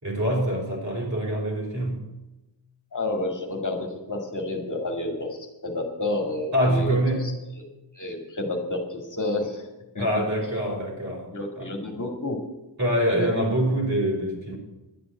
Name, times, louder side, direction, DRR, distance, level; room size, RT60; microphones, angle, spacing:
voice 1, 0.0-2.1 6.5-7.4 10.0-11.3 11.6-11.7 12.8-14.6, right 1 dB, 40° right, -1 dB, 4.5 m, -25 dB
voice 2, 2.9-7.3 7.6-7.7 7.9-9.7 9.9-10.2 11.3-12.4 13.1-13.3, left 2 dB, 45° left, 2 dB, 2.2 m, -30 dB
11.5 x 8.6 x 8.4 m, 0.99 s
wide cardioid pair, 85°, 43 cm